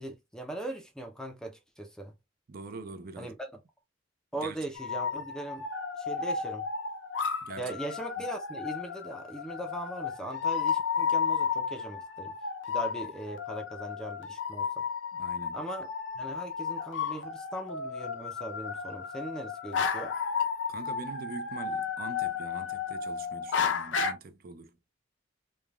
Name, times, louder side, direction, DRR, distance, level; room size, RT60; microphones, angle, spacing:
voice 1, 0.0-2.1 3.2-3.5 4.3-5.7 6.0-6.7 7.6-12.3 12.7-14.8 15.5-15.9 16.1-20.1, right 2 dB, 5° left, 0.5 m, -39 dB
voice 2, 2.5-3.3 4.3-4.7 7.4-7.8 15.1-15.6 20.7-24.8, right 3 dB, 50° right, 0.5 m, -44 dB
sound 1, 4.7-24.1, left 6 dB, 65° left, 0.6 m, -33 dB
3.2 x 2.2 x 2.3 m
head